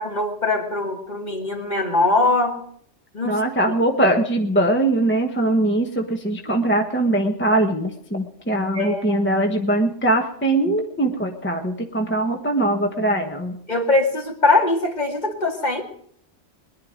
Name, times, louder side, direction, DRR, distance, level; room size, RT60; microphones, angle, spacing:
voice 1, 0.0-2.6 3.1-3.4 6.5-6.6 8.7-9.2 13.7-15.8, left 2 dB, 35° left, 2 dB, 2.2 m, -21 dB
voice 2, 3.2-13.6, right 1 dB, 10° left, 3 dB, 1.1 m, -21 dB
21.5 x 11.0 x 5.1 m, 0.68 s
omnidirectional pair, 1.2 m